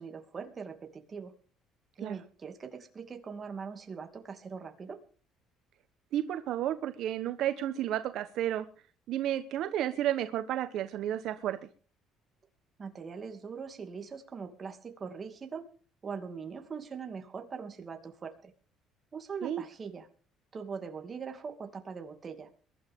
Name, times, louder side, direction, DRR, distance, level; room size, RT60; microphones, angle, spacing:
voice 1, 0.0-1.3 2.0-5.0 12.8-15.7 16.0-18.5 19.1-20.1 20.5-22.5, right 5 dB, 30° right, 6 dB, 2.5 m, -41 dB
voice 2, 6.1-8.7 9.1-11.7 19.4-19.6, right 11 dB, 65° right, 9 dB, 1.2 m, -32 dB
22.5 x 12.0 x 3.7 m, 0.41 s
cardioid pair, 130°, 0 cm